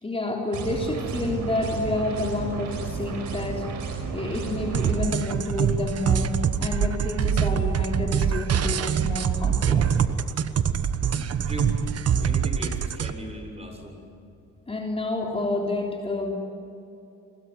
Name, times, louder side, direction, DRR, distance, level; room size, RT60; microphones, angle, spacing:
voice 1, 0.0-3.8 4.1-9.9 14.7-16.3, left 2 dB, 20° left, 0 dB, 3.5 m, -29 dB
sound 1, 0.5-4.9, right 4 dB, 80° right, 5.6 m, -32 dB
sound 2, 4.7-13.1, right 7 dB, 55° right, 1.3 m, -24 dB
voice 2, 11.0-14.0, right 1 dB, 20° right, 4 dB, 6.8 m, -38 dB
26.5 x 22.0 x 9.5 m, 2.7 s
cardioid pair, 90°, 30 cm